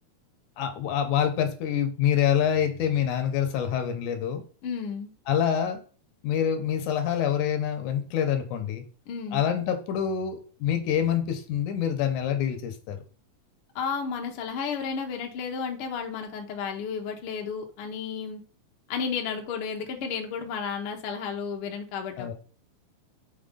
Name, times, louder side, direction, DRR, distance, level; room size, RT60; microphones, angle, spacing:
voice 1, 0.6-4.4 5.3-5.8 6.2-8.8 9.3-13.0 22.2-22.3, left 9 dB, 85° left, 7 dB, 2.2 m, -26 dB
voice 2, 4.6-5.1 9.1-9.5 13.7-18.4 18.9-22.3, left 6 dB, 60° left, 2 dB, 1.6 m, -32 dB
6.4 x 3.9 x 3.7 m, 0.40 s
omnidirectional pair, 3.5 m